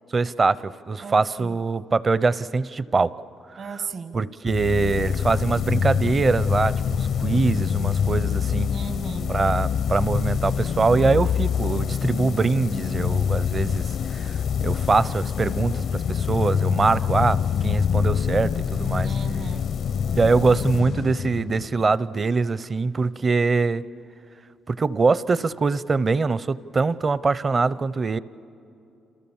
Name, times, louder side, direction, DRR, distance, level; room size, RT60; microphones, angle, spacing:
voice 1, 0.1-3.1 3.5-3.7 4.1-8.7 9.3-19.1 20.2-23.8 24.7-28.2, right 4 dB, 35° right, 18 dB, 0.7 m, -23 dB
voice 2, 1.0-1.6 3.6-4.2 8.7-9.3 19.0-19.7, right 5 dB, 55° right, 10 dB, 1.3 m, -35 dB
sound 1, 4.5-22.0, left 7 dB, 60° left, 0.5 m, -25 dB
29.0 x 28.0 x 7.2 m, 2.7 s
cardioid pair, 90°, 0 cm